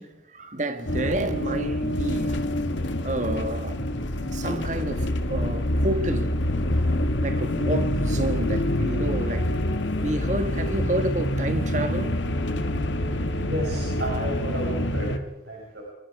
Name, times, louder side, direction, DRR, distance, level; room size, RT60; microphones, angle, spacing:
voice 1, 0.0-2.6 3.0-3.8 4.3-6.4 7.2-9.6 10.0-12.3, right 1 dB, 40° right, 1.6 m, -30 dB
sound 1, 0.9-15.2, left 1 dB, 85° left, 1.6 m, -26 dB
voice 2, 13.4-15.2 15.5-15.8, right 1 dB, 65° right, 5.6 m, -32 dB
25.5 x 25.0 x 4.8 m
head